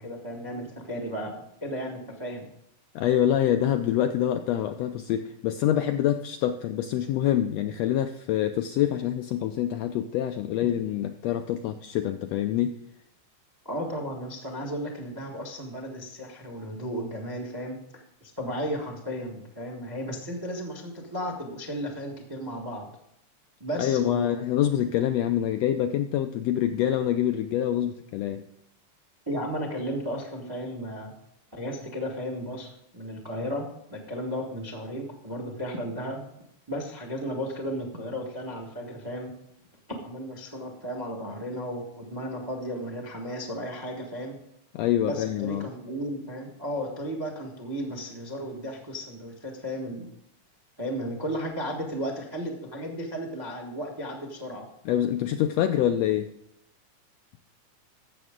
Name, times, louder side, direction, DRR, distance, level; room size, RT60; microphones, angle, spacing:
voice 1, 0.0-2.5 13.6-22.9 23.6-24.4 29.3-31.1 31.5-36.3 36.7-39.3 40.0-44.4 45.0-50.1 50.8-54.7, equal, 25° right, 1 dB, 0.5 m, -34 dB
voice 2, 2.9-12.7 23.8-28.4 44.7-45.7 54.8-56.3, left 11 dB, 80° left, 7 dB, 1.5 m, -26 dB
12.5 x 7.8 x 3.7 m, 0.79 s
omnidirectional pair, 3.4 m